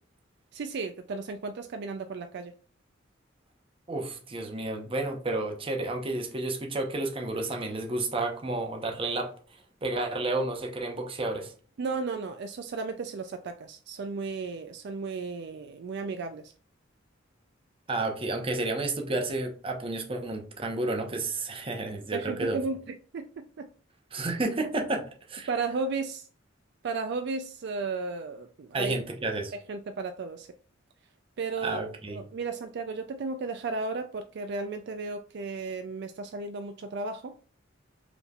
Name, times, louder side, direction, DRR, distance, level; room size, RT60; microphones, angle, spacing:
voice 1, 0.5-2.5 11.8-16.5 22.1-23.7 25.5-26.3 26.8-29.0 29.5-30.5 31.4-37.3, right 4 dB, 60° right, 7 dB, 0.4 m, -34 dB
voice 2, 3.9-9.3 9.8-11.5 17.9-22.6 24.1-25.5 28.7-29.5 31.6-32.2, right 2 dB, 30° right, 3 dB, 0.8 m, -31 dB
5.1 x 3.2 x 2.4 m, 0.41 s
head